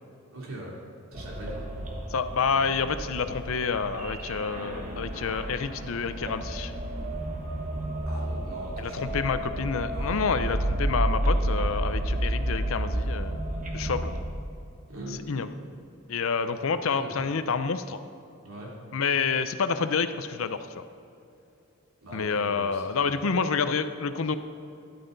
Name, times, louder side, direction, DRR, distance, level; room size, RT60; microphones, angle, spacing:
voice 1, 0.3-0.7 1.1-1.6 8.1-9.2 9.9-10.3 14.9-15.4 16.9-17.2 18.4-18.7 22.0-23.3, right 1 dB, 80° right, -4 dB, 3.1 m, -41 dB
sound 1, 1.1-14.2, right 1 dB, 35° right, 1.4 m, -31 dB
voice 2, 2.1-6.7 8.8-13.4 13.7-14.1 15.3-15.5 16.1-18.0 18.9-20.7 22.1-24.4, left 5 dB, 70° left, 11 dB, 0.6 m, -28 dB
12.5 x 11.0 x 4.0 m, 2.6 s
head